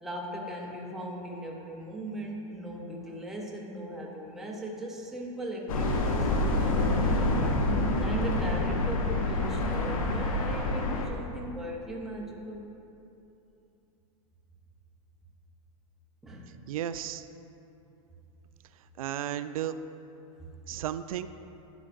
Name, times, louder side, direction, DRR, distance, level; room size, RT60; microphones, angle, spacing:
voice 1, 0.0-7.2 7.9-12.7 16.2-16.5 19.0-19.1, right 1 dB, ahead, -2 dB, 0.6 m, -38 dB
sound 1, 5.7-11.1, left 2 dB, 80° left, 1.2 m, -27 dB
voice 2, 16.7-17.3 19.0-19.8 20.7-21.3, right 11 dB, 85° right, 12 dB, 0.4 m, -33 dB
12.0 x 8.8 x 2.5 m, 2.8 s
supercardioid pair, 175°, 18 cm